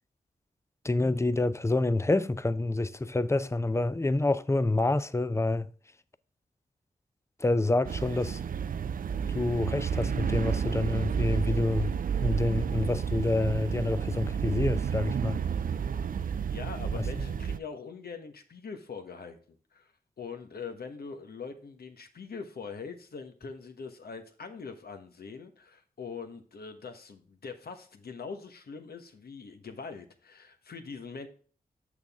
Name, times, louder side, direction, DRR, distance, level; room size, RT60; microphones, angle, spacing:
voice 1, 0.8-5.7 7.4-8.4 9.3-11.9 12.2-15.4 16.9-17.1, left 2 dB, 15° left, 0.6 m, -27 dB
sound 1, 7.8-17.6, right 7 dB, 60° right, 0.5 m, -31 dB
voice 2, 16.2-19.4 19.7-19.9 20.2-31.3, left 5 dB, 75° left, 1.2 m, -42 dB
7.3 x 6.5 x 3.6 m
cardioid pair, 60°, 16 cm